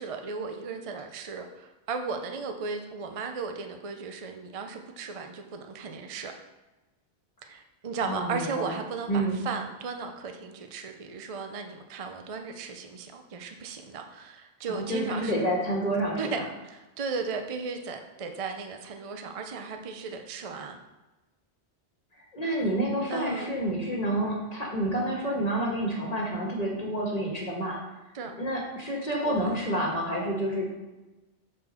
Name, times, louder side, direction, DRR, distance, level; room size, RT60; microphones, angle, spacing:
voice 1, 0.0-6.4 7.5-15.4 16.2-20.8 23.1-23.5 28.1-28.3 29.1-29.6, right 5 dB, 40° right, 5 dB, 0.5 m, -36 dB
voice 2, 8.0-8.8 9.1-9.4 14.7-16.4 22.3-27.8 28.4-30.7, right 1 dB, 35° left, -2 dB, 1.6 m, -29 dB
9.2 x 4.2 x 4.3 m, 1.1 s
omnidirectional pair, 1.2 m